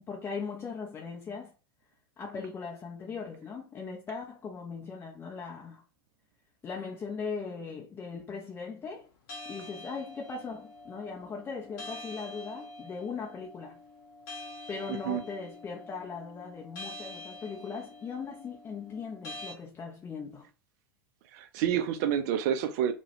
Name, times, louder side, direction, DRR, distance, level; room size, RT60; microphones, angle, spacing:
voice 1, 0.1-1.5 2.2-5.8 6.6-9.1 9.4-13.8 14.7-20.5, left 5 dB, 20° left, 0.4 m, -39 dB
sound 1, 9.3-19.5, left 2 dB, 50° left, 0.7 m, -46 dB
voice 2, 14.9-15.2 21.3-22.9, right 9 dB, 45° right, 0.4 m, -28 dB
2.3 x 2.1 x 2.8 m
figure-of-eight pair, 85°, 13 cm